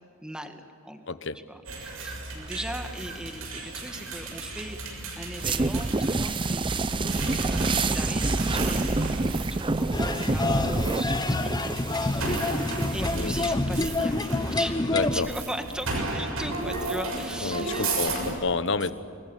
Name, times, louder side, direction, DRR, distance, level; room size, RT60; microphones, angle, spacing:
voice 1, 0.2-1.2 1.4-4.8 5.1-12.6 12.9-18.1, equal, 5° right, 5 dB, 1.9 m, -39 dB
voice 2, 1.1-1.4 13.1-13.3 14.9-15.3 17.4-18.9, left 3 dB, 60° left, 12 dB, 1.2 m, -29 dB
sound 1, 1.7-18.3, right 2 dB, 80° right, 6.9 m, -34 dB
sound 2, 5.4-13.4, right 2 dB, 25° right, 0.6 m, -28 dB
sound 3, 9.9-15.2, left 2 dB, 20° left, 1.0 m, -27 dB
27.5 x 22.0 x 9.2 m, 2.5 s
head